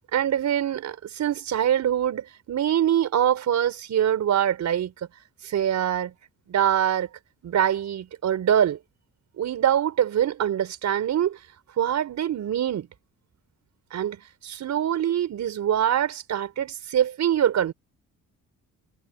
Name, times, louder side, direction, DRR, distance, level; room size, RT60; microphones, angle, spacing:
voice 1, 0.1-4.9 5.4-6.1 6.5-7.1 7.4-8.8 9.4-11.4 11.8-12.9 13.9-17.7, right 10 dB, 65° right, 5.1 m, -24 dB
cardioid pair, 90°, 30 cm